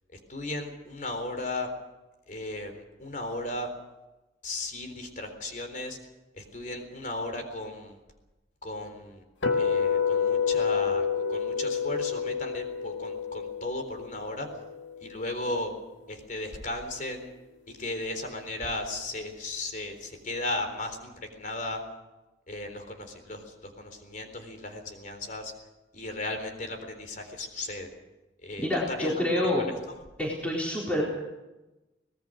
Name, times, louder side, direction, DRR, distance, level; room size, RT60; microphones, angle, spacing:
voice 1, 0.3-1.7 2.3-3.7 4.4-6.0 6.3-8.0 8.6-9.2 9.5-14.5 15.0-15.7 16.1-17.3 17.7-21.8 22.5-25.5 25.9-27.9 28.4-29.1 29.4-30.0, left 2 dB, 40° left, 6 dB, 3.8 m, -36 dB
sound 1, 9.4-15.5, left 6 dB, 80° left, 1.9 m, -29 dB
voice 2, 28.6-29.7 30.2-31.0, left 1 dB, 5° left, -4 dB, 4.0 m, -27 dB
25.0 x 19.0 x 6.4 m, 1.0 s
head